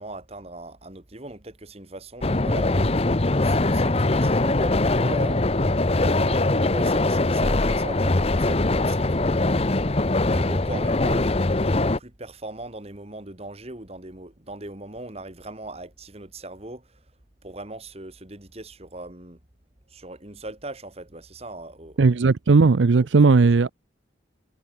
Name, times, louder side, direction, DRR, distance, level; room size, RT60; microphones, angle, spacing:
voice 1, 0.0-3.0 3.4-5.4 6.0-9.5 10.3-17.0 17.4-19.4 19.9-22.0 22.9-23.4, right 2 dB, 35° right, 2.2 m, -39 dB
sound 1, 2.2-12.0, left 2 dB, 35° left, 0.9 m, -22 dB
voice 2, 22.0-23.7, right 4 dB, 80° right, 0.6 m, -17 dB
head